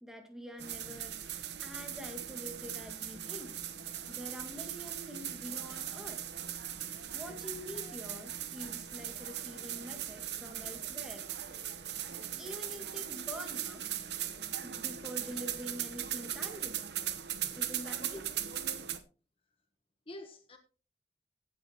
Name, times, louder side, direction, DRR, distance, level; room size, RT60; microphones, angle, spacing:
voice 1, 0.0-3.6 4.1-6.2 7.1-11.3 12.4-13.8 14.6-16.9 17.6-18.4, equal, 5° right, 2.1 m, -46 dB
sound 1, 0.6-19.0, right 10 dB, 75° right, 1.0 m, -39 dB
voice 2, 7.7-8.2 20.1-20.6, left 1 dB, 30° left, 1.1 m, -49 dB
16.0 x 8.8 x 3.0 m
head